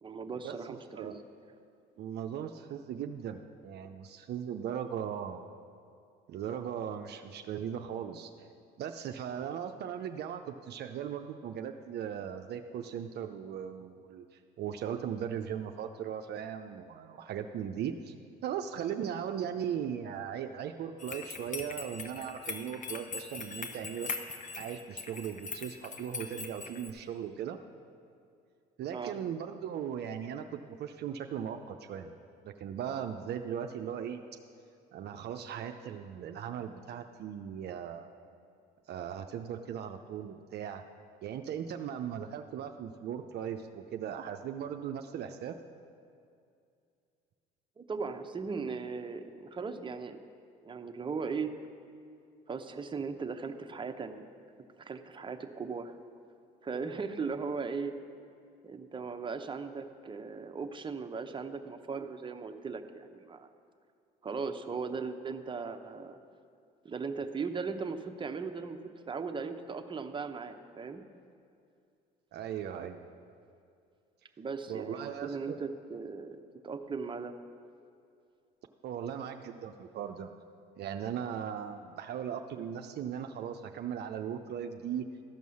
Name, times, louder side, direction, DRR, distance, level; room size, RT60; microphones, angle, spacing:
voice 1, 0.0-1.2 28.9-29.2 47.8-50.2 50.6-51.5 52.5-54.2 54.8-55.9 56.6-58.0 58.6-63.5 64.2-66.2 66.8-68.8 69.1-71.0 74.4-76.4 76.6-77.3, right 5 dB, 25° right, 6 dB, 0.8 m, -38 dB
voice 2, 2.0-5.5 6.3-8.3 8.8-18.1 18.4-24.2 24.6-27.6 28.8-32.1 32.4-34.2 34.9-38.1 38.9-40.8 41.2-45.6 72.3-73.0 74.7-75.6 78.8-80.3 80.8-85.1, right 8 dB, 60° right, 6 dB, 0.6 m, -38 dB
sound 1, 21.0-26.9, left 4 dB, 40° left, 1.0 m, -41 dB
13.5 x 5.4 x 6.3 m, 2.4 s
supercardioid pair, 70°, 19 cm